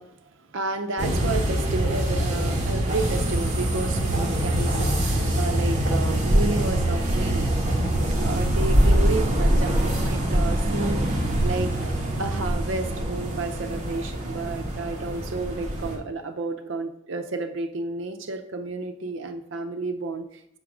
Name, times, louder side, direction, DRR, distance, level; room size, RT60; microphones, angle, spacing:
voice 1, 0.0-7.5 8.2-11.7 12.2-20.4, right 3 dB, 65° right, 7 dB, 0.6 m, -31 dB
sound 1, 1.0-15.9, right 1 dB, 35° right, 1.0 m, -24 dB
6.2 x 3.6 x 4.9 m, 0.73 s
head